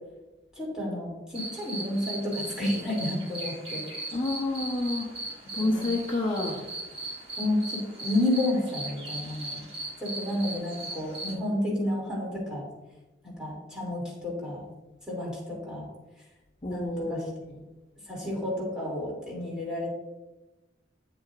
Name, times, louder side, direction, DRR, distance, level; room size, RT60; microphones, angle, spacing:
voice 1, 0.5-3.8 5.4-5.8 7.4-9.6 10.0-12.7 13.2-14.7 15.1-15.9 16.7-17.3 18.1-19.9, left 1 dB, 5° right, -5 dB, 2.8 m, -31 dB
sound 1, 1.3-11.3, right 2 dB, 30° right, 2.1 m, -38 dB
voice 2, 4.1-5.1 5.5-6.6 16.6-17.6 18.2-18.3, left 2 dB, 30° left, -3 dB, 0.9 m, -29 dB
8.6 x 7.7 x 2.5 m, 1.0 s
head